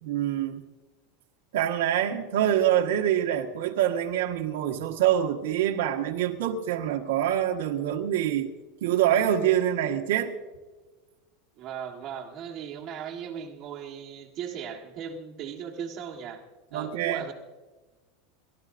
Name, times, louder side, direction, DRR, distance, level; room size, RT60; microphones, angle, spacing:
voice 1, 0.0-0.6 1.5-8.5 8.8-10.3 16.7-17.3, right 11 dB, 80° right, 1 dB, 1.4 m, -25 dB
voice 2, 11.6-16.4 16.7-17.3, right 8 dB, 35° right, 0 dB, 1.5 m, -37 dB
29.0 x 13.0 x 2.6 m, 1.3 s
supercardioid pair, 165°, 0 cm